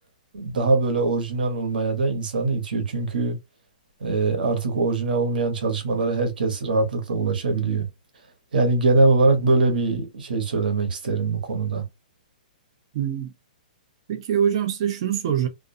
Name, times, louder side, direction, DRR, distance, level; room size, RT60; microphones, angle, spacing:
voice 1, 0.3-3.4 4.0-7.9 8.5-11.8, right 3 dB, 80° right, 1.0 m, -22 dB
voice 2, 12.9-13.3 14.1-15.5, right 9 dB, 40° right, 0.5 m, -24 dB
2.4 x 2.2 x 2.6 m
hypercardioid pair, 165°, 5 cm